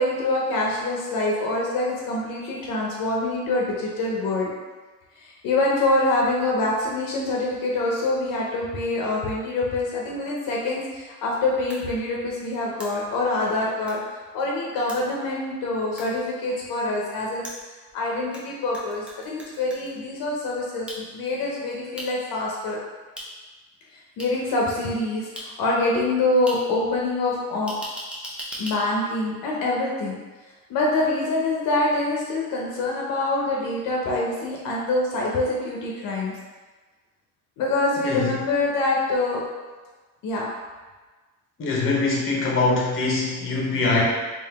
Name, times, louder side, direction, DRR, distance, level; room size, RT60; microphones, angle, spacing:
voice 1, 0.0-4.5 5.1-14.0 14.3-17.4 17.9-22.8 23.9-27.7 28.6-30.2 30.7-36.3 37.6-39.4 40.2-40.5, left 2 dB, 70° left, -3 dB, 0.8 m, -25 dB
sound 1, 11.7-11.8 12.8-12.9 13.9-14.0 14.9-15.0 16.0-16.1 17.4-18.4 18.7-19.9 20.9-21.0 22.0-22.1 23.2-23.3 24.2-24.3 25.4-25.5 26.5-26.6 27.7-28.8, equal, 5° right, 0.6 m, -36 dB
voice 2, 38.0-38.4 41.6-44.0, left 3 dB, 35° left, -3 dB, 1.0 m, -23 dB
3.7 x 2.6 x 3.5 m, 1.3 s
cardioid pair, 145°, 35 cm